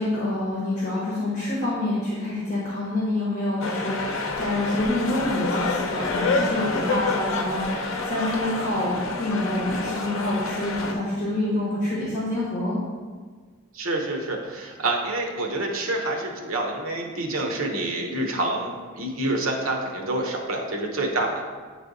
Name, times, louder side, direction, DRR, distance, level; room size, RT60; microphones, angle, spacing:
voice 1, 0.0-12.8, left 1 dB, 35° left, -6 dB, 1.2 m, -27 dB
sound 1, 3.6-10.9, left 3 dB, 70° left, 0.7 m, -28 dB
voice 2, 13.7-21.4, right 2 dB, 80° right, 2 dB, 0.9 m, -27 dB
9.1 x 3.3 x 3.9 m, 1.5 s
head